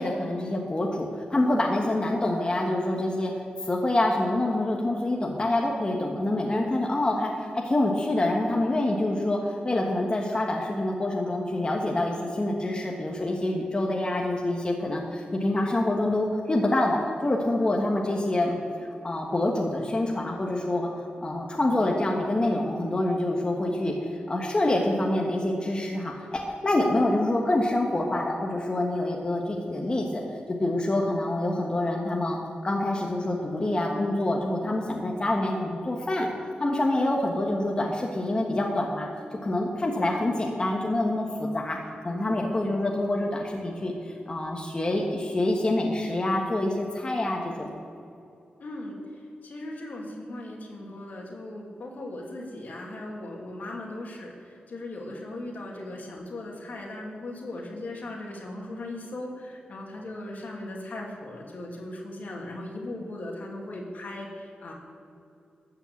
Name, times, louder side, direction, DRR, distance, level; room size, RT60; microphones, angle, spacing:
voice 1, 0.0-3.3 3.6-18.6 19.0-20.9 21.2-30.2 30.6-36.3 36.6-39.1 39.4-41.8 42.0-47.7, left 1 dB, 30° left, -1 dB, 1.4 m, -26 dB
voice 2, 48.6-64.7, left 1 dB, 65° left, -1 dB, 2.6 m, -38 dB
13.0 x 5.8 x 8.4 m, 2.6 s
cardioid pair, 75°, 3 cm